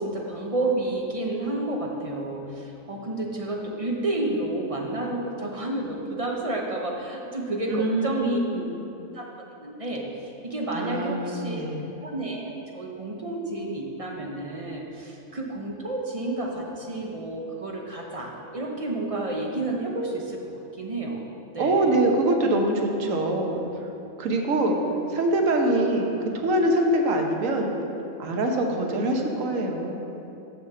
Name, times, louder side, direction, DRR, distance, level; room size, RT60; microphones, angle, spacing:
voice 1, 0.0-8.4 9.1-9.3 9.6-11.6 12.0-21.2 21.5-21.9, right 2 dB, 30° right, 0 dB, 0.7 m, -30 dB
voice 2, 7.7-9.0 10.7-11.8 21.6-23.6 24.2-24.8 25.1-27.7 28.2-30.0, right 1 dB, 70° right, 2 dB, 1.3 m, -24 dB
6.7 x 6.5 x 6.6 m, 2.8 s
omnidirectional pair, 1.5 m